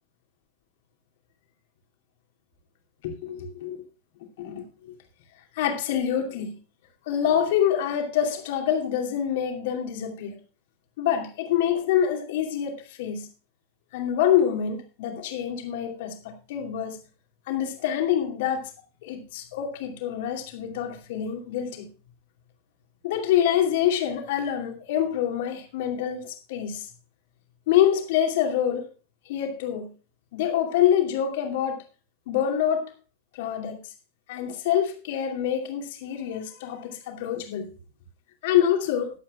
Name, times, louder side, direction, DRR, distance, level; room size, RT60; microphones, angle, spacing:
voice 1, 3.0-3.9 4.4-5.0 5.5-6.5 7.1-10.4 11.0-13.3 13.9-17.0 17.5-18.7 19.0-21.9 23.0-26.9 27.7-28.8 29.3-29.9 30.3-31.8 32.3-32.9 33.3-33.9 34.3-37.7 38.4-39.1, left 10 dB, 50° left, 2.4 m, -26 dB
20.5 x 8.4 x 2.4 m
figure-of-eight pair, 90°, 0 cm